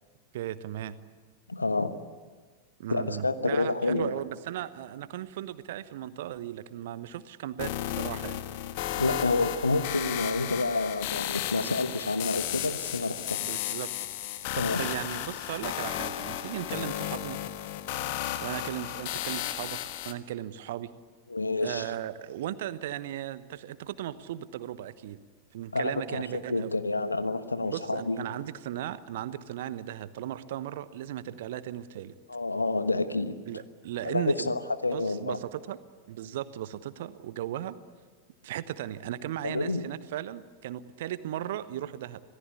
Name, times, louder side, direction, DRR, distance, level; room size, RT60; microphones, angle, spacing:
voice 1, 0.3-0.9 2.8-8.4 13.4-13.9 14.5-17.4 18.4-19.8 20.0-20.9 21.6-25.2 25.5-26.7 27.6-32.1 33.5-34.5 34.9-35.8 36.1-37.8 38.4-42.2, right 12 dB, 55° right, 14 dB, 1.1 m, -36 dB
voice 2, 1.5-1.9 2.9-4.2 9.0-13.4 14.5-14.8 21.3-21.9 25.7-28.2 32.3-33.6 34.0-35.4 39.4-39.8, left 3 dB, 80° left, 12 dB, 1.2 m, -29 dB
sound 1, 7.6-20.1, left 13 dB, 50° left, 1.3 m, -34 dB
26.5 x 18.0 x 8.4 m, 1.5 s
figure-of-eight pair, 90°, 0 cm